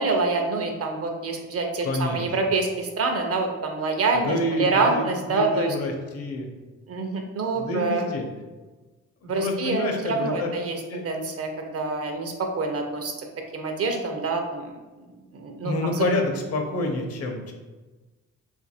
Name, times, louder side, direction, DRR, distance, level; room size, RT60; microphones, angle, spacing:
voice 1, 0.0-5.8 6.9-8.1 9.3-13.1 13.5-14.6 15.3-16.0, right 3 dB, 50° right, 3 dB, 0.6 m, -26 dB
voice 2, 1.8-2.3 4.2-5.0 5.3-6.5 7.5-8.3 9.2-10.5 10.9-11.0 15.6-17.5, left 2 dB, 55° left, 3 dB, 0.7 m, -28 dB
2.6 x 2.5 x 4.1 m, 1.2 s
cardioid pair, 90°, 30 cm